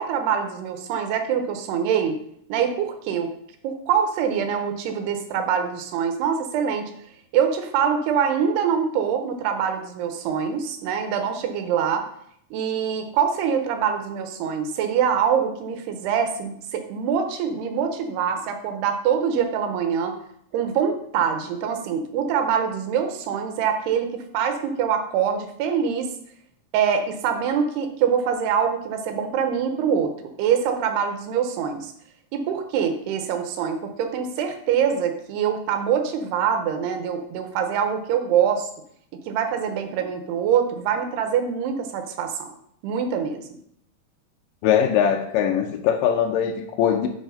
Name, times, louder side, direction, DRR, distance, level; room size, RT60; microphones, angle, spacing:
voice 1, 0.0-2.2 2.5-3.3 3.6-6.9 7.3-12.0 12.5-20.1 20.5-26.1 26.7-30.1 30.4-31.9 32.3-38.7 39.3-42.5 42.8-43.5, right 7 dB, 85° right, 6 dB, 2.8 m, -24 dB
voice 2, 44.6-47.1, left 8 dB, 90° left, 3 dB, 1.9 m, -21 dB
8.9 x 4.2 x 5.2 m, 0.70 s
omnidirectional pair, 4.7 m